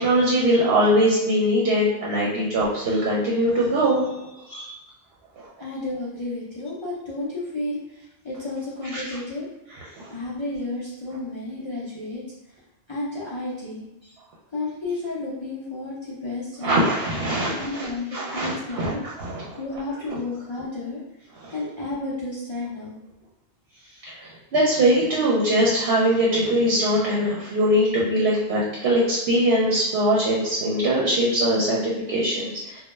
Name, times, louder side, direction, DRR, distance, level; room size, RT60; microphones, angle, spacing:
voice 1, 0.0-4.7 8.9-9.2 10.0-10.1 16.6-18.9 19.2-19.4 21.4-21.5 24.1-32.8, right 1 dB, 70° right, -5 dB, 0.8 m, -22 dB
voice 2, 5.6-9.5 10.1-12.2 12.9-13.9 14.5-16.9 17.5-18.1 18.3-19.0 19.6-21.0 21.5-23.0, left 2 dB, 50° left, -8 dB, 0.3 m, -32 dB
2.1 x 2.1 x 3.1 m, 0.91 s
omnidirectional pair, 1.1 m